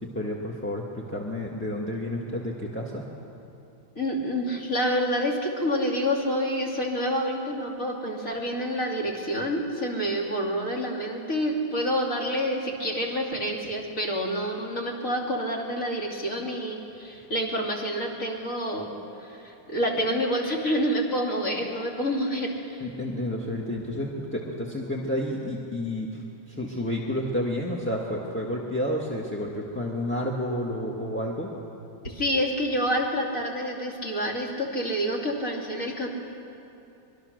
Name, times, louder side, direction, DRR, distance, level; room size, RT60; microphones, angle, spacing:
voice 1, 0.0-3.1 22.8-31.5, left 1 dB, 5° left, -2 dB, 1.5 m, -30 dB
voice 2, 3.9-18.9 19.2-22.8 32.0-36.1, equal, 40° left, -1 dB, 3.3 m, -28 dB
25.0 x 22.0 x 6.6 m, 2.8 s
omnidirectional pair, 2.2 m